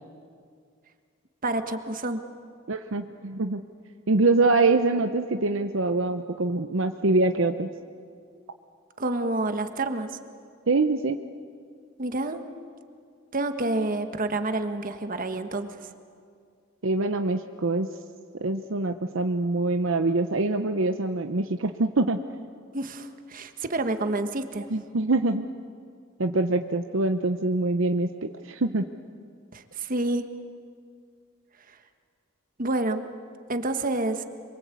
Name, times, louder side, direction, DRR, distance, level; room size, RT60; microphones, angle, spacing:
voice 1, 1.4-2.2 9.0-10.1 12.0-12.4 13.3-15.7 22.7-24.7 29.5-30.2 32.6-33.0 33.5-34.2, right 2 dB, 40° right, 8 dB, 1.5 m, -28 dB
voice 2, 2.7-3.6 4.1-7.7 10.7-11.2 16.8-17.9 18.4-22.2 24.7-25.5 26.2-28.8, right 2 dB, 65° right, 7 dB, 0.8 m, -24 dB
26.0 x 23.5 x 8.4 m, 2.2 s
head